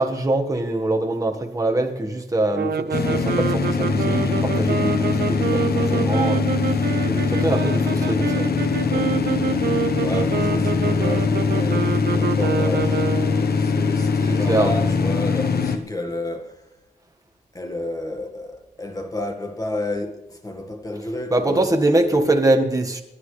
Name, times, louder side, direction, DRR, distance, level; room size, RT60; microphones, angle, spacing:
voice 1, 0.0-6.4 6.7-8.5 8.9-9.0 14.3-14.7 21.3-23.0, right 2 dB, 20° right, 1.6 m, -23 dB
sound 1, 2.5-13.5, right 7 dB, 80° right, 0.7 m, -27 dB
sound 2, 2.9-15.8, left 4 dB, 75° left, 1.1 m, -22 dB
voice 2, 5.8-6.1 10.0-16.6 17.5-21.7 22.2-22.3, left 1 dB, 20° left, 1.7 m, -31 dB
29.5 x 11.0 x 3.3 m
wide cardioid pair, 115°, 16 cm